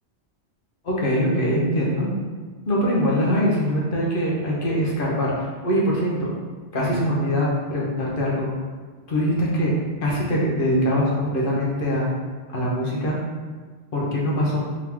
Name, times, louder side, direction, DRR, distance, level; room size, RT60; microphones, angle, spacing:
voice 1, 0.8-2.1 2.7-6.3 6.7-8.5 9.1-9.8 10.0-12.1 12.5-13.2 13.9-14.6, equal, 50° left, -4 dB, 1.0 m, -23 dB
3.7 x 3.6 x 2.9 m, 1.5 s
omnidirectional pair, 1.2 m